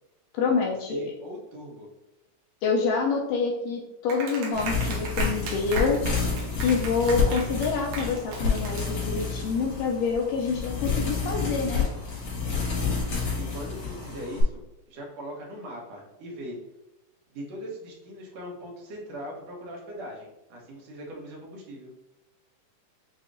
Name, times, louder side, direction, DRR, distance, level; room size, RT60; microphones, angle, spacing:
voice 1, 0.3-1.0 2.6-6.0 6.6-11.9, left 5 dB, 80° left, 0 dB, 2.0 m, -27 dB
voice 2, 0.9-1.9 13.4-16.6 17.3-21.9, equal, 65° right, -2 dB, 1.8 m, -40 dB
Clapping, 4.1-9.4, right 3 dB, 85° right, 1.5 m, -36 dB
sound 1, 4.5-14.4, left 4 dB, 55° left, 2.4 m, -29 dB
6.4 x 2.8 x 2.5 m, 0.95 s
omnidirectional pair, 4.0 m